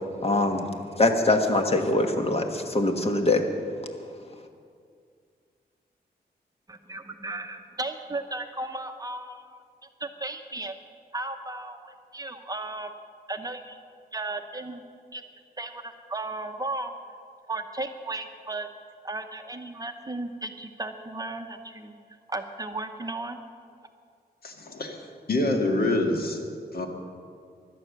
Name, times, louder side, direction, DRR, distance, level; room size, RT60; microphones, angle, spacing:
voice 1, 0.2-0.7 1.0-3.4, left 2 dB, 35° left, 5 dB, 1.4 m, -23 dB
voice 2, 6.7-9.4 10.0-10.8 11.1-12.9 13.3-13.8 14.1-14.8 15.1-15.2 15.6-16.9 17.5-18.7 19.0-22.0 22.3-23.4, right 2 dB, 20° right, 6 dB, 0.8 m, -35 dB
voice 3, 24.4-25.0 25.3-26.4 26.7-26.9, left 2 dB, 60° left, 3 dB, 1.9 m, -26 dB
17.0 x 11.5 x 6.6 m, 2.2 s
wide cardioid pair, 130°, 17 cm